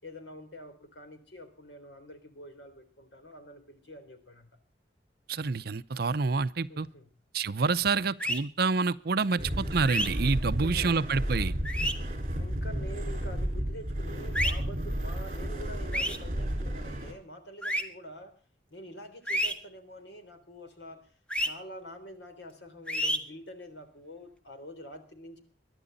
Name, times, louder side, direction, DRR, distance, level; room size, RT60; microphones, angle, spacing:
voice 1, 0.0-4.5 6.7-7.1 9.1-9.7 10.5-11.3 12.3-18.3 18.7-21.1 21.4-25.4, equal, 80° left, 8 dB, 3.6 m, -46 dB
voice 2, 5.3-6.9 7.3-11.5, right 4 dB, 60° right, 15 dB, 0.7 m, -28 dB
sound 1, 8.2-8.4 9.8-10.1 11.6-11.9 14.3-14.5 15.9-16.2 17.6-17.8 19.3-19.5 21.3-21.5 22.9-23.2, equal, 5° left, 1.5 m, -28 dB
sound 2, 9.4-17.1, equal, 45° right, 4.6 m, -32 dB
23.0 x 11.0 x 4.0 m, 0.42 s
head